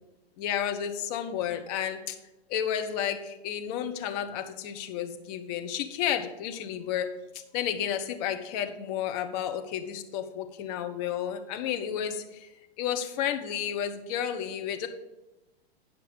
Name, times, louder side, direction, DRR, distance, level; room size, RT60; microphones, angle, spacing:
voice 1, 0.4-2.2 2.5-7.1 7.5-12.5 12.8-14.9, left 9 dB, 40° left, 6 dB, 1.0 m, -31 dB
9.7 x 5.7 x 5.3 m, 1.0 s
figure-of-eight pair, 105°, 31 cm